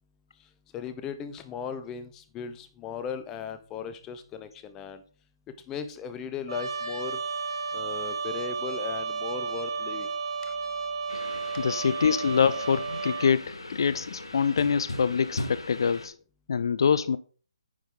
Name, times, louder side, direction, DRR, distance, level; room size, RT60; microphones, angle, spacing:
voice 1, 0.7-5.0 5.7-7.2 7.7-10.1, left 7 dB, 15° left, 0.8 m, -37 dB
Trumpet, 6.5-13.3, right 4 dB, 75° right, 1.9 m, -33 dB
sound 1, 11.1-16.1, left 2 dB, 85° left, 1.7 m, -39 dB
voice 2, 11.6-16.1 16.5-17.2, left 6 dB, 60° left, 0.4 m, -25 dB
9.6 x 5.3 x 3.8 m
figure-of-eight pair, 145°, 3 cm